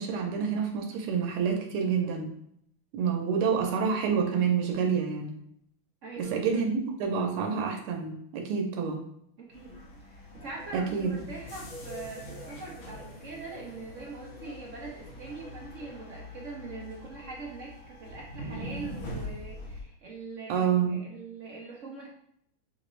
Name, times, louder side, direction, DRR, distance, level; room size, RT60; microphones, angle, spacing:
voice 1, 0.0-2.3 2.9-5.4 6.2-9.0 10.7-11.1 20.5-21.0, right 6 dB, 90° right, 2 dB, 1.6 m, -28 dB
voice 2, 6.0-6.7 9.4-9.7 10.0-22.1, right 4 dB, 60° right, -3 dB, 0.8 m, -42 dB
sound 1, 9.5-19.8, left 1 dB, 65° left, 1.9 m, -43 dB
6.2 x 2.5 x 3.1 m, 0.72 s
omnidirectional pair, 2.4 m